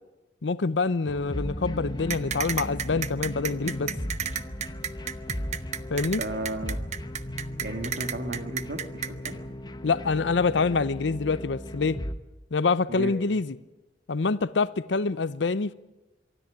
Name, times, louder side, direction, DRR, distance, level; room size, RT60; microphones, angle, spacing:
voice 1, 0.4-3.9 5.9-6.2 9.8-12.0 12.5-13.6 14.1-15.7, left 4 dB, 80° left, 0.7 m, -26 dB
sound 1, 1.1-12.1, equal, 25° left, 1.2 m, -36 dB
sound 2, 2.1-9.3, right 8 dB, 40° right, 0.9 m, -31 dB
voice 2, 6.2-6.8 7.6-9.4 12.9-13.1, right 1 dB, 60° right, 2.1 m, -34 dB
23.5 x 13.0 x 10.0 m
head